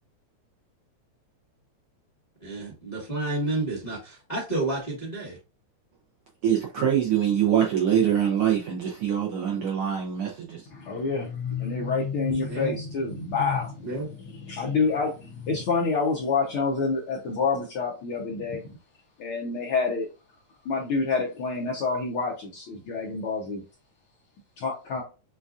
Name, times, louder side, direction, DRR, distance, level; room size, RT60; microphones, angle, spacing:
voice 1, 2.4-5.4 12.5-12.7 13.8-14.1, right 2 dB, 35° left, 0.7 m, -30 dB
voice 2, 6.4-10.6, right 9 dB, 80° right, 1.2 m, -24 dB
voice 3, 10.7-15.1 15.5-18.8 19.2-20.1 20.6-23.6 24.6-25.0, left 4 dB, 75° left, 1.3 m, -28 dB
6.7 x 2.4 x 2.4 m
omnidirectional pair, 3.4 m